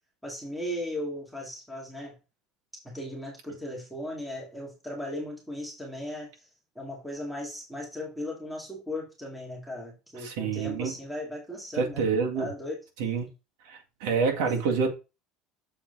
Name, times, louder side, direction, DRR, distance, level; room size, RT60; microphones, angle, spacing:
voice 1, 0.2-2.1 2.8-6.5 6.8-12.0 12.4-12.8 14.3-14.5, left 1 dB, ahead, 2.2 m, -37 dB
voice 2, 10.2-10.9 11.8-12.5 13.0-13.3 13.7-14.9, right 5 dB, 85° right, 1.9 m, -27 dB
7.0 x 4.7 x 3.9 m
cardioid pair, 140°, 0 cm